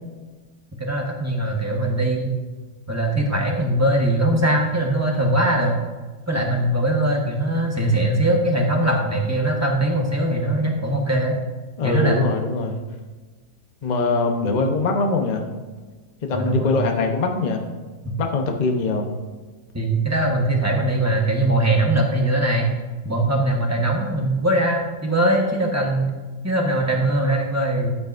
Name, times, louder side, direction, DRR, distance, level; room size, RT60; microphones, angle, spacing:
voice 1, 0.8-2.4 2.9-5.8 6.3-11.4 11.8-12.2 16.3-16.8 18.0-18.1 19.7-22.7 23.0-26.1 26.4-27.9, right 1 dB, 10° right, 0 dB, 1.0 m, -21 dB
voice 2, 11.8-12.8 13.8-15.5 16.2-17.6 18.2-19.1, left 3 dB, 35° left, 3 dB, 0.7 m, -22 dB
12.0 x 8.6 x 2.6 m, 1.3 s
omnidirectional pair, 2.0 m